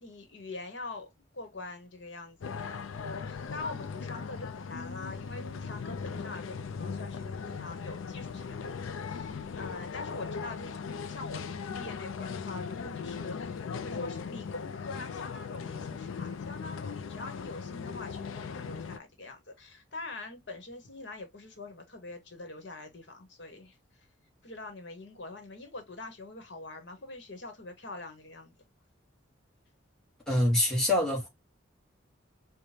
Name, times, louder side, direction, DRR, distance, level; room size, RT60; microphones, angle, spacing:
voice 1, 0.0-1.1 1.3-11.4 11.7-23.8 24.4-28.5, left 2 dB, 60° left, 1.1 m, -44 dB
sound 1, 2.4-19.0, left 6 dB, 80° left, 0.4 m, -38 dB
voice 2, 30.3-31.3, left 1 dB, 5° left, 1.3 m, -25 dB
4.9 x 2.2 x 2.7 m
head